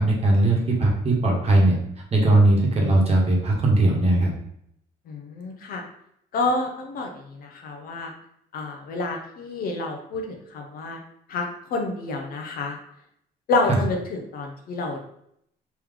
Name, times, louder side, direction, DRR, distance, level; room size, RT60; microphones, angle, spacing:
voice 1, 0.0-1.7 2.1-4.3, right 2 dB, 40° right, -1 dB, 1.1 m, -19 dB
voice 2, 5.1-5.8 6.3-8.1 8.5-11.0 11.3-12.8 13.5-15.0, left 3 dB, 60° left, 2 dB, 0.7 m, -28 dB
3.3 x 3.0 x 3.6 m, 0.72 s
cardioid pair, 110°, 17 cm